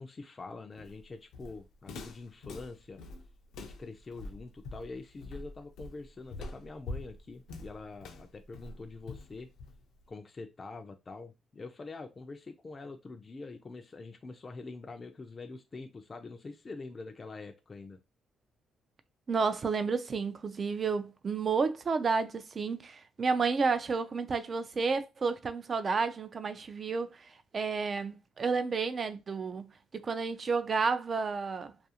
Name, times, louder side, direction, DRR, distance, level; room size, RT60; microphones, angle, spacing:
voice 1, 0.0-3.0 3.6-9.5 10.1-18.0, left 3 dB, 30° left, 0.4 m, -45 dB
Walk footsteps, 0.8-10.0, left 2 dB, 85° left, 0.5 m, -45 dB
voice 2, 19.3-27.2 27.5-31.7, right 4 dB, 40° right, 0.3 m, -31 dB
2.4 x 2.4 x 2.7 m
cardioid pair, 90°, 0 cm